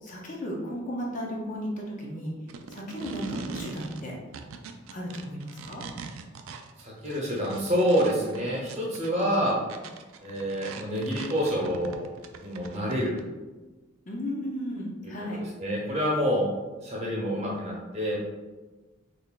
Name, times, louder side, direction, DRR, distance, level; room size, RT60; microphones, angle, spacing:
voice 1, 0.0-2.3 2.7-4.2 4.9-5.8 14.1-15.4, equal, 40° left, -2 dB, 0.6 m, -34 dB
sound 1, 2.5-13.2, right 4 dB, 85° right, 0.3 m, -41 dB
voice 2, 6.8-9.6 10.2-12.0 12.4-13.2 15.0-15.1 15.6-16.5 16.8-18.2, equal, 30° right, -4 dB, 0.9 m, -27 dB
3.8 x 3.2 x 2.3 m, 1.2 s
head